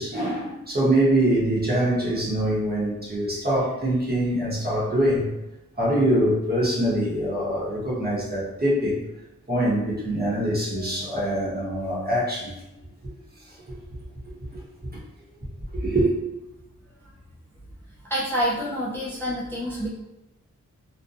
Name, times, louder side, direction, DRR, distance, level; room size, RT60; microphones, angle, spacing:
voice 1, 0.0-5.3 5.8-9.0 9.5-12.5 13.0-13.1 13.5-13.6 14.3-15.0 15.7-16.1, right 1 dB, 30° right, -7 dB, 1.0 m, -24 dB
voice 2, 18.1-19.9, equal, 10° left, -7 dB, 0.4 m, -27 dB
2.6 x 2.2 x 2.4 m, 0.95 s
wide cardioid pair, 75°, 31 cm